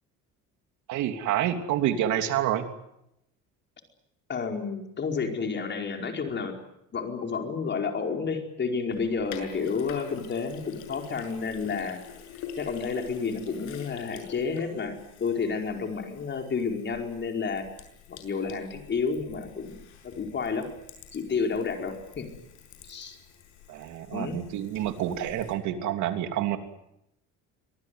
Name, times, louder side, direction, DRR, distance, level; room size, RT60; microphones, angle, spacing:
voice 1, 0.9-2.7 23.7-26.6, right 11 dB, 70° right, 7 dB, 3.1 m, -28 dB
voice 2, 4.3-6.5 6.9-12.0 12.6-17.7 18.1-19.8 20.0-20.7 21.1-22.3 22.9-23.2 24.1-24.4, left 5 dB, 35° left, 4 dB, 4.9 m, -30 dB
Sink (filling or washing), 8.9-25.5, left 7 dB, 70° left, 7.0 m, -47 dB
24.5 x 19.0 x 9.5 m, 0.82 s
cardioid pair, 115°, 30 cm